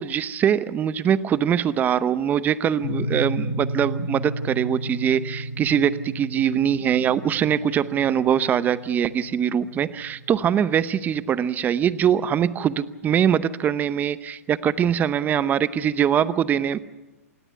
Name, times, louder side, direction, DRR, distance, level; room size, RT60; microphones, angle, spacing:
voice 1, 0.0-16.8, right 9 dB, 20° right, 16 dB, 0.8 m, -22 dB
sound 1, 2.8-11.5, equal, 50° left, 5.6 m, -33 dB
28.0 x 18.5 x 5.8 m, 1.1 s
hypercardioid pair, 120°, 8 cm